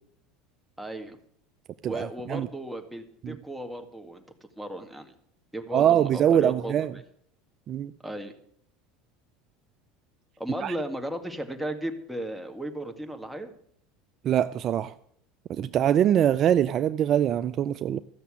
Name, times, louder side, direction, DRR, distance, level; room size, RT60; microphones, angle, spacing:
voice 1, 0.8-1.2 1.9-4.2 4.6-5.1 5.5-7.0 8.0-8.3 10.4-13.5, right 1 dB, ahead, 4 dB, 1.9 m, -35 dB
voice 2, 1.8-2.5 3.2-3.4 5.7-6.9 7.7-7.9 10.6-10.7 14.2-14.9 15.5-18.0, right 10 dB, 45° right, 12 dB, 0.5 m, -23 dB
14.0 x 6.8 x 8.6 m, 0.66 s
supercardioid pair, 95°, 0 cm